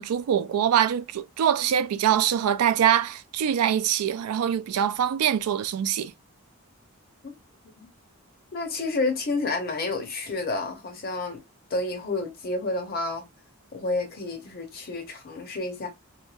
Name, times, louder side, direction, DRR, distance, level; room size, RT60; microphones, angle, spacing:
voice 1, 0.0-6.1, right 9 dB, 85° right, 0.3 m, -24 dB
voice 2, 8.5-11.4 11.7-13.2 13.7-15.9, left 3 dB, 40° left, 0.6 m, -30 dB
2.8 x 2.2 x 2.3 m
head